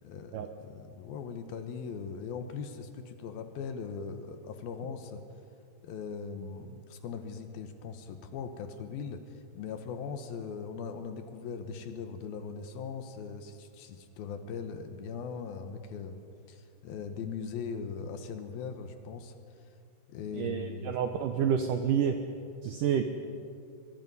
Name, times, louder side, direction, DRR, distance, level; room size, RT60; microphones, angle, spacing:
voice 1, 0.0-5.2 5.8-9.2 9.5-16.2 16.5-19.3 20.1-21.0, left 6 dB, 70° left, 8 dB, 2.7 m, -40 dB
voice 2, 20.3-22.2 22.6-23.1, right 8 dB, 80° right, 6 dB, 1.9 m, -29 dB
24.0 x 22.0 x 5.5 m, 2.5 s
omnidirectional pair, 4.8 m